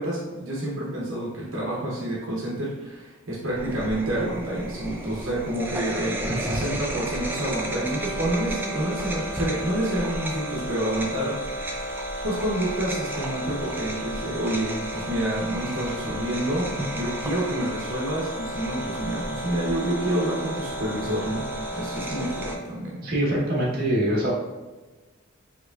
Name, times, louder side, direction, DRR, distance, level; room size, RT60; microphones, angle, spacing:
voice 1, 0.0-21.4 21.7-23.0, right 1 dB, 65° right, -5 dB, 0.8 m, -28 dB
sound 1, 3.5-22.6, right 1 dB, 10° right, 0.4 m, -32 dB
voice 2, 6.3-6.7 23.0-24.3, right 1 dB, 45° right, -5 dB, 1.0 m, -24 dB
4.6 x 3.0 x 2.4 m, 1.2 s
head